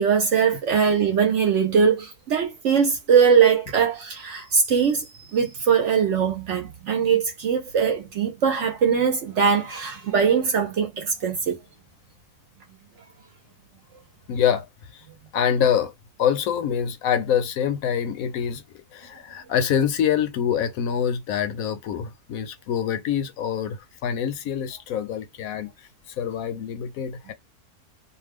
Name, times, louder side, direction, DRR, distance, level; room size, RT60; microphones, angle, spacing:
voice 1, 0.0-11.6, right 6 dB, 65° right, 0.8 m, -21 dB
voice 2, 14.3-14.7 14.9-15.0 15.3-15.9 16.2-18.6 18.9-25.9 26.2-27.3, left 8 dB, 70° left, 0.9 m, -25 dB
2.5 x 2.2 x 3.4 m
omnidirectional pair, 1.6 m